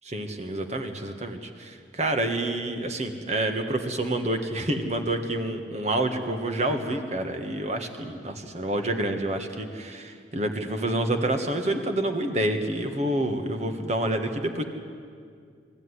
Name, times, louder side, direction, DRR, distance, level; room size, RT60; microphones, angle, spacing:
voice 1, 0.1-14.6, right 1 dB, 40° right, 6 dB, 1.7 m, -28 dB
22.0 x 15.0 x 9.8 m, 2.2 s
head